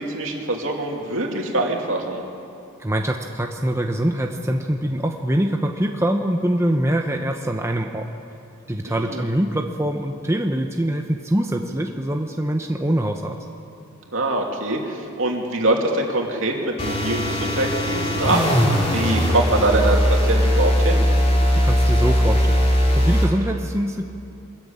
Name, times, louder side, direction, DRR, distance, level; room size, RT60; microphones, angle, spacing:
voice 1, 0.0-2.2 8.8-9.3 14.1-18.6 18.9-21.1, right 2 dB, 65° right, 0 dB, 2.9 m, -23 dB
voice 2, 2.8-8.1 8.7-13.4 21.6-22.7 22.9-24.0, right 1 dB, 15° right, 2 dB, 0.9 m, -23 dB
sound 1, 16.8-23.3, equal, 30° left, 3.1 m, -19 dB
24.0 x 14.0 x 8.8 m, 2.6 s
head